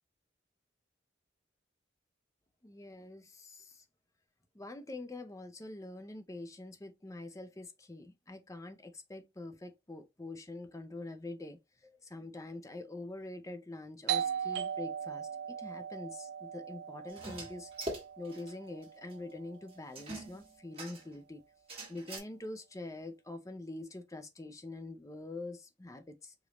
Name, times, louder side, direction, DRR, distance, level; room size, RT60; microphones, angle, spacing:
voice 1, 2.6-3.8 4.5-17.7 18.2-21.4 21.9-26.3, left 2 dB, 15° left, 0.5 m, -45 dB
Doorbell, 14.1-19.5, right 8 dB, 55° right, 0.4 m, -38 dB
sound 1, 17.1-18.5 18.8-18.9 19.1-19.2 20.0-21.2 21.7-22.2, right 1 dB, 30° right, 1.5 m, -42 dB
5.0 x 2.6 x 3.0 m
head